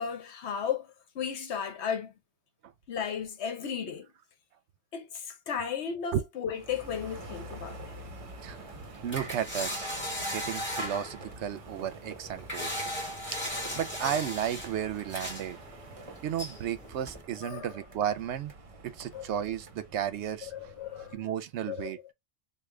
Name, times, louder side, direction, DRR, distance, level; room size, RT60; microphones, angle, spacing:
voice 1, 0.0-2.1 2.9-4.1 4.9-8.0 17.4-17.7 19.1-19.3 20.4-21.2 21.7-21.9, left 7 dB, 65° left, 1.0 m, -35 dB
sound 1, 6.5-21.1, right 2 dB, 35° right, 0.6 m, -47 dB
sound 2, 6.7-17.2, equal, 10° left, 1.6 m, -39 dB
voice 2, 9.0-9.9 10.3-12.8 13.3-13.4 13.7-15.6 16.2-18.5 18.8-20.7 21.0-22.0, right 10 dB, 75° right, 0.8 m, -33 dB
3.2 x 2.4 x 3.6 m
omnidirectional pair, 1.2 m